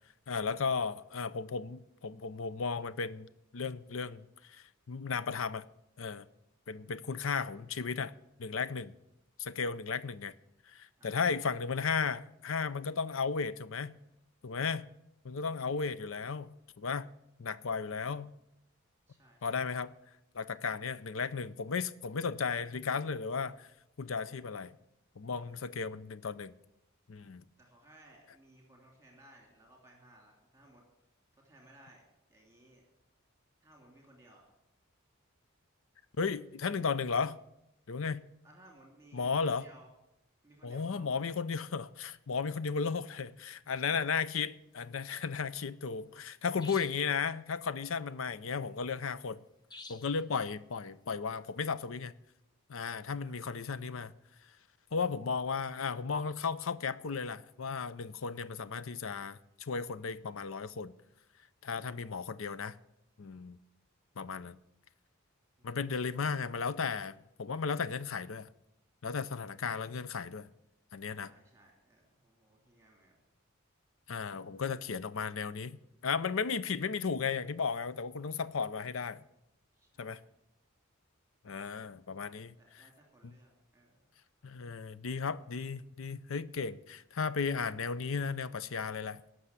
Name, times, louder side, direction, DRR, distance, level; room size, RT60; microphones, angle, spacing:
voice 1, 0.3-3.3 3.5-5.6 6.0-6.3 6.7-8.1 8.4-8.9 9.4-10.3 10.7-14.0 14.4-14.8 15.2-17.1 17.4-18.3 19.4-19.9 20.3-23.7 24.0-24.8 25.2-26.5 27.1-27.4 36.2-37.4 37.9-38.3 39.1-39.6 40.6-49.4 49.9-52.1 52.7-54.1 54.9-60.9 61.6-62.8 63.2-63.6 64.2-64.6 65.6-68.5 69.0-70.5 70.9-71.3 74.1-75.8 76.0-79.2 80.0-80.2 81.4-82.5 84.4-89.2, left 5 dB, 70° left, 0.6 m, -35 dB
voice 2, 6.8-7.4 11.0-11.2 19.1-19.7 25.2-25.9 27.6-30.8 31.3-32.0 32.3-32.9 33.6-34.5 38.4-39.9 40.4-41.1 53.2-53.5 61.8-62.0 65.6-66.1 71.1-73.2 79.7-80.2 82.5-84.1, right 1 dB, 15° right, 2.8 m, -61 dB
sound 1, 46.6-47.1 49.7-50.2, left 3 dB, 20° left, 0.7 m, -50 dB
17.5 x 6.5 x 8.1 m
head